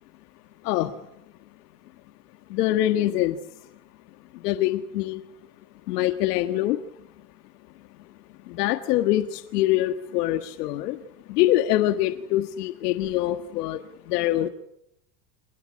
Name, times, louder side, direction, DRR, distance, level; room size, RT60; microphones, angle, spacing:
voice 1, 2.5-3.4 4.4-5.2 5.9-6.8 8.6-10.9 11.3-13.8 14.1-14.5, left 14 dB, 80° left, 10 dB, 1.6 m, -24 dB
29.0 x 18.5 x 9.7 m, 0.82 s
supercardioid pair, 135°, 46 cm